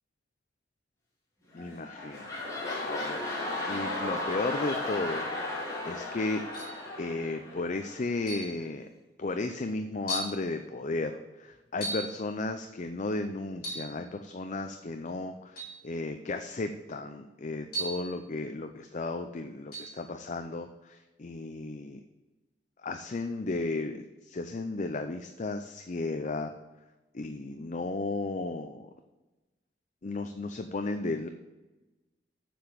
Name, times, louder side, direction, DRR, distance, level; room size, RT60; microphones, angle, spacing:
voice 1, 1.5-3.2 3.7-5.3 5.8-6.4 7.0-8.9 9.2-22.0 22.8-26.5 27.1-28.9 30.0-31.3, left 2 dB, 40° left, 6 dB, 0.6 m, -34 dB
sound 1, 1.5-8.1 8.6-8.7, left 2 dB, 20° left, 3.6 m, -35 dB
sound 2, 6.5-6.8 8.3-8.6 9.4-9.5 10.1-10.4 11.8-12.2 13.6-14.0 15.6-15.8 17.7-18.1 19.7-20.0, right 1 dB, 60° left, 4.0 m, -36 dB
7.5 x 7.0 x 6.9 m, 1.1 s
head